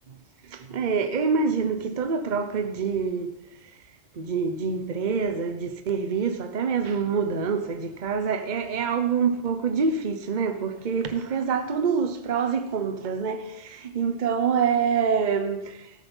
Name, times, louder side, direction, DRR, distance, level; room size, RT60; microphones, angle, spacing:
voice 1, 0.5-3.3 4.2-15.7, right 6 dB, 40° right, 1.0 m, -26 dB
13.5 x 9.6 x 5.5 m
omnidirectional pair, 1.2 m